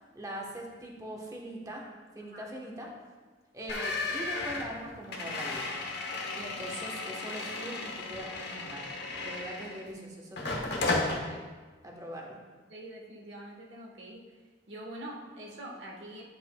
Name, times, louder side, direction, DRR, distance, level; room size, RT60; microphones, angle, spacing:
voice 1, 0.1-1.8 2.1-2.9 3.5-5.7 6.3-8.9 9.2-11.5 11.8-12.4, right 1 dB, 20° right, -1 dB, 1.1 m, -42 dB
sound 1, 3.7-9.9 10.4-11.2, left 3 dB, 60° left, 1.0 m, -34 dB
voice 2, 12.7-14.4 14.7-16.2, right 1 dB, 65° right, -1 dB, 1.3 m, -44 dB
10.5 x 7.0 x 2.3 m, 1.4 s
head